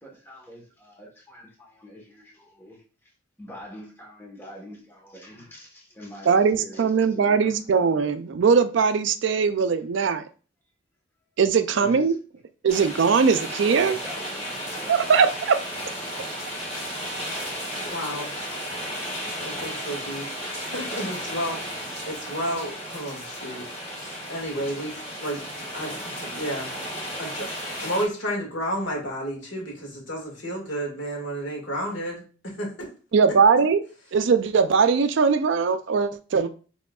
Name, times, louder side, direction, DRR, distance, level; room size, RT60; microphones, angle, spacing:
voice 1, 0.0-8.2 11.7-12.1 13.7-15.1, equal, 10° left, 1.2 m, -44 dB
voice 2, 6.3-10.2 11.4-12.1 12.6-13.9 14.9-15.6 33.1-33.8 34.1-36.5, right 5 dB, 60° right, 0.4 m, -20 dB
sound 1, 12.7-28.0, equal, 30° left, 2.2 m, -34 dB
voice 3, 17.8-18.3 19.4-25.4 25.7-26.7 27.2-32.9, equal, 65° left, 2.0 m, -32 dB
6.1 x 3.5 x 2.3 m
head